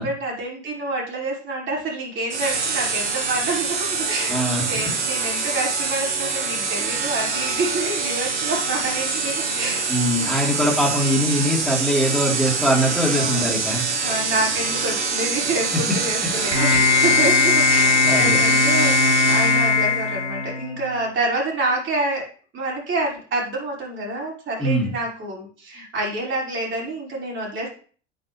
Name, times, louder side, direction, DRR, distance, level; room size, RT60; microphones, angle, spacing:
voice 1, 0.0-9.9 10.1-10.4 13.0-13.6 14.0-22.3 22.5-27.7, right 2 dB, 35° right, -3 dB, 5.6 m, -27 dB
sound 1, 2.3-19.9, right 4 dB, 75° right, 2.0 m, -25 dB
voice 2, 4.3-4.8 9.9-13.8 18.0-18.4 24.6-24.9, equal, ahead, -2 dB, 3.9 m, -22 dB
sound 2, 16.5-21.0, left 4 dB, 85° left, 2.8 m, -19 dB
9.3 x 9.1 x 3.4 m, 0.42 s
figure-of-eight pair, 75°, 35 cm